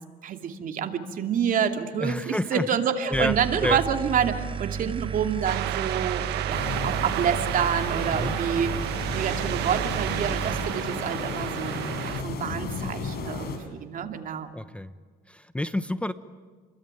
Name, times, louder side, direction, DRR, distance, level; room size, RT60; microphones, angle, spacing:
voice 1, 0.2-14.5, right 7 dB, 55° right, 5 dB, 2.6 m, -28 dB
voice 2, 2.0-2.6 3.1-3.3 3.6-3.8 8.1-8.3 14.5-14.9 15.3-16.1, left 1 dB, 5° left, 12 dB, 0.9 m, -28 dB
sound 1, 3.1-10.7, right 7 dB, 30° right, 1.0 m, -33 dB
sound 2, 5.4-12.2, right 14 dB, 85° right, 1.2 m, -32 dB
sound 3, 6.5-13.6, left 4 dB, 65° left, 6.4 m, -34 dB
30.0 x 22.0 x 9.2 m, 1.6 s
cardioid pair, 110°, 17 cm